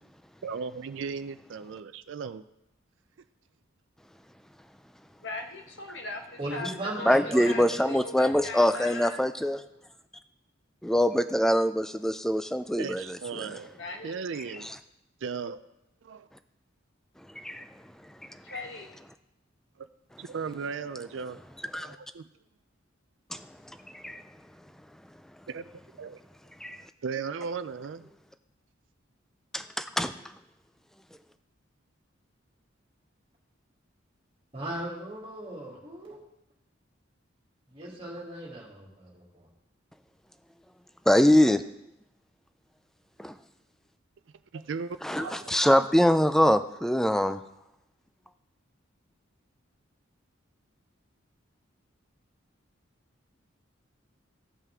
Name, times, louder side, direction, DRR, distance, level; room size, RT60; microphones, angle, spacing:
voice 1, 0.4-2.4 12.8-13.8 14.0-14.7 15.2-15.6 16.0-16.3 19.8-19.9 20.2-21.4 21.8-22.2 25.5-25.7 26.0-26.2 27.0-28.1 44.5-45.5, right 5 dB, 70° right, 11 dB, 0.4 m, -36 dB
voice 2, 5.2-9.2 13.7-14.2 18.3-18.9, left 2 dB, 65° left, 2 dB, 1.3 m, -39 dB
voice 3, 6.4-7.8 8.1-8.4 34.5-36.2 37.7-39.5, right 1 dB, 30° right, -3 dB, 2.4 m, -38 dB
voice 4, 7.1-9.6 10.8-13.5 14.6-14.7 17.4-17.7 21.7-22.0 23.3-23.5 23.9-24.2 26.6-26.8 29.5-30.1 41.1-41.6 43.2-43.3 45.0-47.4, equal, ahead, 10 dB, 0.3 m, -24 dB
15.0 x 5.7 x 3.6 m, 0.87 s
head